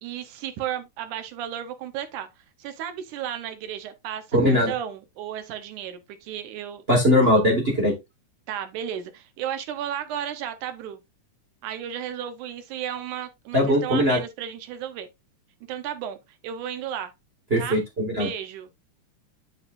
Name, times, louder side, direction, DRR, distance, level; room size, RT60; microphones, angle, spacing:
voice 1, 0.0-2.3 2.6-6.8 8.5-11.0 11.6-15.1 15.7-16.2 16.4-17.1 17.6-17.8 18.2-18.7, right 10 dB, 75° right, 2.4 m, -33 dB
voice 2, 4.3-4.7 6.9-8.0 13.5-14.2 17.5-18.3, left 1 dB, 35° right, 0.9 m, -20 dB
10.5 x 4.8 x 2.6 m
omnidirectional pair, 3.7 m